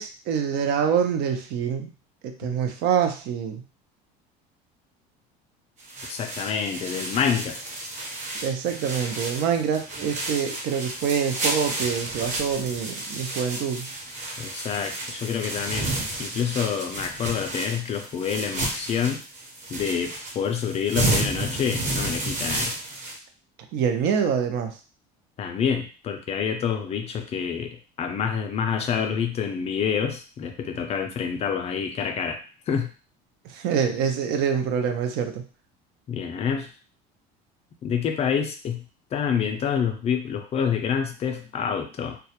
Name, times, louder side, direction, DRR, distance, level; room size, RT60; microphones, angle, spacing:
voice 1, 0.0-1.9 2.2-3.6 8.4-13.9 23.7-24.7 33.5-35.4, right 7 dB, 65° right, 6 dB, 0.5 m, -25 dB
sound 1, 5.8-23.2, right 2 dB, 40° right, 0.8 m, -31 dB
voice 2, 6.1-7.6 14.4-15.9 16.2-19.2 19.7-22.7 25.4-32.4 32.7-32.9 36.1-36.7 37.8-38.8 39.1-42.2, left 7 dB, 35° left, 5 dB, 0.4 m, -27 dB
2.2 x 2.0 x 2.8 m, 0.35 s
cardioid pair, 125°, 19 cm